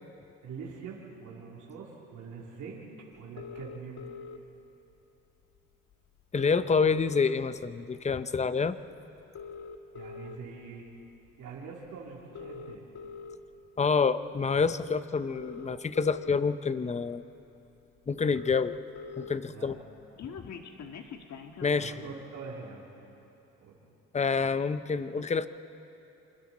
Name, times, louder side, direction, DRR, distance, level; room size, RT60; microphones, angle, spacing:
voice 1, 0.4-2.9 3.2-4.1 9.9-10.8 11.4-12.9 19.5-19.7 21.7-22.9 23.6-23.8, right 5 dB, 85° right, -4 dB, 3.4 m, -44 dB
sound 1, 3.4-4.4 5.6-5.7 5.9-6.0 6.2-7.6 8.1-8.4 9.2-10.4 11.1-11.3 12.2-13.4 14.6-14.7 15.2-16.4 17.0-17.1 17.4-17.5 17.8-17.9 18.1-19.4 19.7-21.8, left 5 dB, 65° left, 1.7 m, -43 dB
voice 2, 6.3-8.8 13.8-17.2 18.1-18.8 19.2-19.8 21.6-21.9 24.1-25.5, left 5 dB, 25° left, 13 dB, 0.7 m, -27 dB
27.0 x 27.0 x 4.3 m, 2.9 s
cardioid pair, 90°, 30 cm